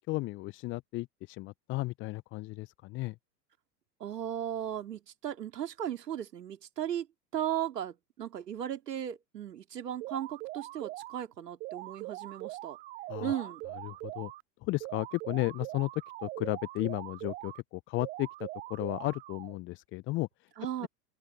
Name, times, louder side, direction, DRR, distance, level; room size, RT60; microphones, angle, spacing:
voice 1, 0.1-3.1 13.1-13.5 13.8-14.3 14.6-20.5 20.8-20.9, left 20 dB, 25° left, 0.6 m, -34 dB
voice 2, 4.0-7.1 7.3-12.8 13.2-13.6 20.6-20.9, right 10 dB, 70° right, 2.6 m, -36 dB
sound 1, 10.0-11.2 11.6-14.4 14.8-17.6 18.0-19.6, right 18 dB, 20° right, 0.4 m, -42 dB
open air
figure-of-eight pair, 95°, 50 cm